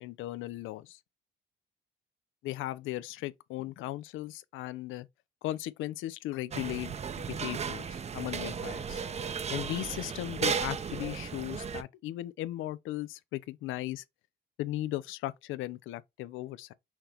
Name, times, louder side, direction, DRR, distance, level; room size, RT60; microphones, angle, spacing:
voice 1, 0.0-1.0 2.4-5.1 5.4-6.9 7.3-9.0 9.5-14.0 14.6-16.7, left 15 dB, 90° left, 0.4 m, -37 dB
sound 1, 6.5-11.8, right 6 dB, 35° right, 0.5 m, -35 dB
5.7 x 2.9 x 3.2 m
cardioid pair, 90°, 20 cm